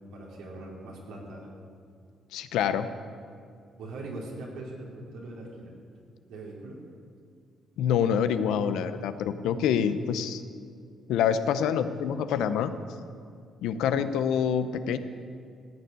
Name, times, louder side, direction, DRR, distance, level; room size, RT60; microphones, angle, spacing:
voice 1, 0.1-1.5 3.8-5.7 6.3-6.8, right 2 dB, 90° right, -2 dB, 3.2 m, -41 dB
voice 2, 2.3-2.9 7.8-10.4 11.1-12.7 13.6-15.0, left 8 dB, 90° left, 11 dB, 0.7 m, -26 dB
15.0 x 6.8 x 9.4 m, 2.3 s
cardioid pair, 90°, 0 cm